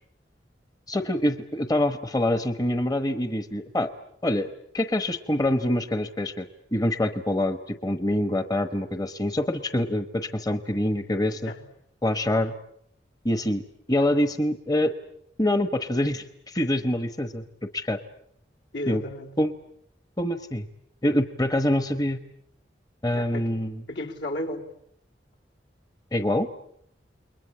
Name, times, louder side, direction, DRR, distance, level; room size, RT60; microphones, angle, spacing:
voice 1, 0.9-3.9 4.2-11.5 12.0-12.5 13.2-13.6 13.9-14.9 15.4-18.0 18.9-19.0 19.4-19.5 20.2-20.7 21.0-22.2 23.0-23.8 26.1-26.5, left 1 dB, 20° left, 10 dB, 1.0 m, -25 dB
voice 2, 18.7-19.3 23.1-23.5 23.9-24.7, left 1 dB, 80° left, 0 dB, 3.4 m, -33 dB
29.0 x 22.0 x 8.6 m, 0.72 s
head